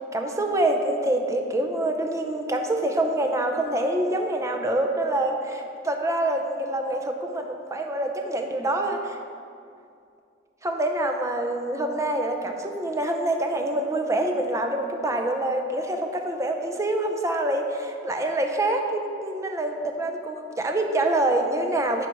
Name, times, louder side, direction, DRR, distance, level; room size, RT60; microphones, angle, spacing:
voice 1, 0.1-9.2 10.6-22.1, right 1 dB, 15° right, 3 dB, 0.6 m, -26 dB
10.5 x 4.3 x 4.6 m, 2.4 s
head